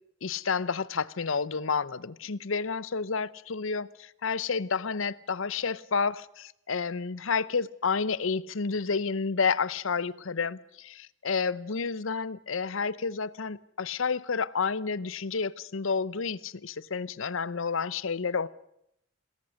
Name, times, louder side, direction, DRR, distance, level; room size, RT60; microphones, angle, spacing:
voice 1, 0.2-18.5, left 5 dB, 80° left, 0.8 m, -30 dB
26.5 x 19.5 x 6.4 m
head